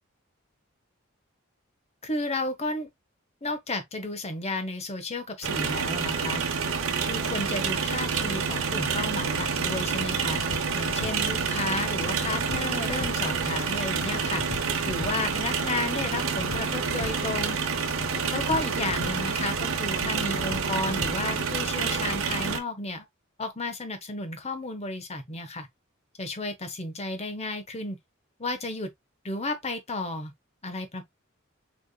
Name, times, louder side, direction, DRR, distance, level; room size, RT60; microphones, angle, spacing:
voice 1, 2.0-2.9 3.4-6.4 7.1-14.4 14.8-17.6 18.3-23.1 23.4-25.7 26.2-28.0 28.4-28.9 29.2-30.3 30.6-31.0, left 2 dB, 30° left, 1.1 m, -33 dB
sound 1, 5.4-22.6, right 5 dB, 90° right, 1.0 m, -28 dB
sound 2, 9.1-21.5, left 3 dB, 65° left, 0.7 m, -42 dB
6.6 x 3.5 x 2.2 m
head